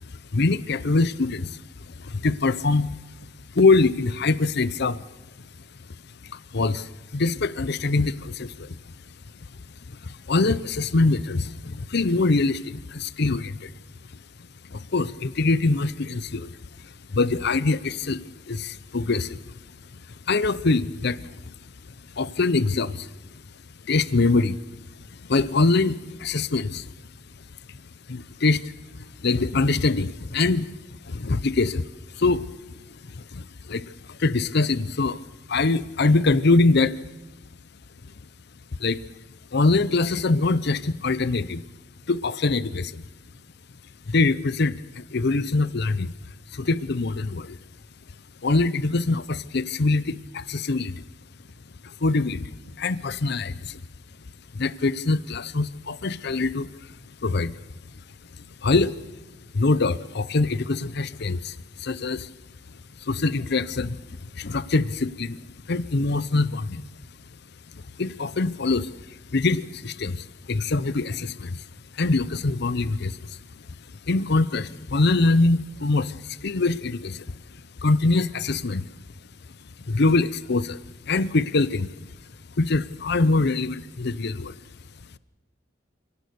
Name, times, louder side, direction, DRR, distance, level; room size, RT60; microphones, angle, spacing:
voice 1, 0.0-3.0 3.5-5.0 5.4-5.5 6.2-8.8 9.9-13.7 14.7-19.6 19.9-21.5 22.1-23.1 23.8-24.6 25.1-26.9 27.4-27.5 27.7-27.8 28.1-31.9 32.1-35.2 35.5-37.0 38.0-38.1 38.8-39.0 39.5-41.6 42.1-43.1 44.1-46.1 46.5-47.6 48.4-51.0 51.8-53.8 54.5-57.0 57.2-57.6 57.9-58.0 58.4-58.9 59.5-62.3 62.7-65.4 65.6-66.8 67.7-71.7 71.9-73.4 74.1-77.4 77.8-78.9 79.8-82.1 82.6-84.6, left 3 dB, 60° left, 16 dB, 0.7 m, -24 dB
27.0 x 17.5 x 6.9 m, 1.1 s
head